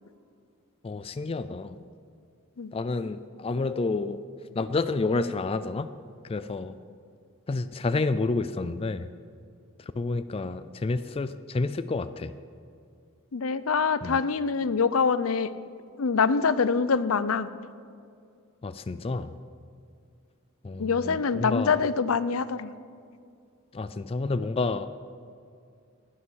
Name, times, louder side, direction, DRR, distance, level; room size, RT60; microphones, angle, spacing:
voice 1, 0.8-1.8 2.7-4.2 4.5-5.9 6.2-6.8 7.5-9.1 9.8-12.3 14.0-14.2 18.6-19.4 20.6-21.8 23.7-24.9, left 3 dB, 25° left, 11 dB, 0.4 m, -29 dB
voice 2, 13.3-15.5 16.0-17.5 20.8-22.7, left 5 dB, 75° left, 15 dB, 0.6 m, -25 dB
16.5 x 9.9 x 6.3 m, 2.3 s
head